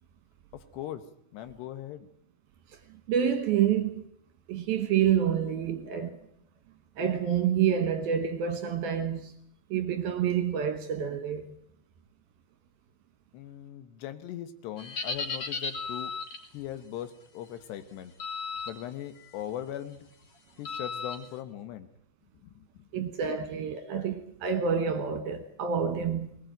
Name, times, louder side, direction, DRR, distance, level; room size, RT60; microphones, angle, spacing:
voice 1, 0.5-1.0 1.3-2.1 13.3-16.1 16.5-18.1 18.7-20.1 20.6-21.9 22.4-23.0, left 11 dB, 70° left, 2.9 m, -40 dB
voice 2, 3.1-4.0 4.5-6.2 7.0-9.3 9.7-11.6 22.9-26.3, right 8 dB, 65° right, 2.7 m, -28 dB
sound 1, 14.8-16.5 18.2-18.7 19.2-19.4 20.7-21.2, left 4 dB, 40° left, 3.9 m, -35 dB
21.0 x 19.5 x 9.1 m
omnidirectional pair, 5.5 m